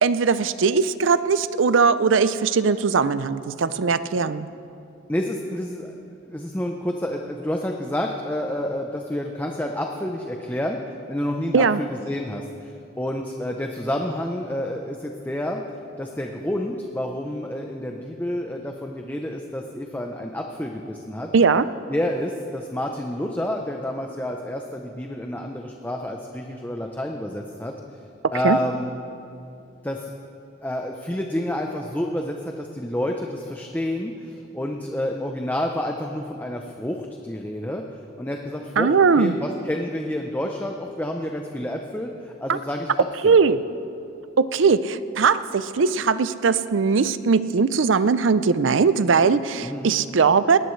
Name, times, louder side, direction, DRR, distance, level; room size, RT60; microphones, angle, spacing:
voice 1, 0.0-4.5 11.5-11.8 21.3-21.7 28.4-28.6 38.8-39.3 42.5-42.6 43.2-43.6 44.4-50.6, right 5 dB, 85° right, 14 dB, 0.5 m, -19 dB
voice 2, 5.1-6.0 6.2-10.8 11.1-15.6 16.0-21.3 21.9-28.0 28.3-28.9 29.8-30.1 30.6-37.8 38.2-38.9 39.2-43.4 49.6-49.9, left 1 dB, 10° left, 2 dB, 0.7 m, -29 dB
19.0 x 18.0 x 3.2 m, 2.7 s
head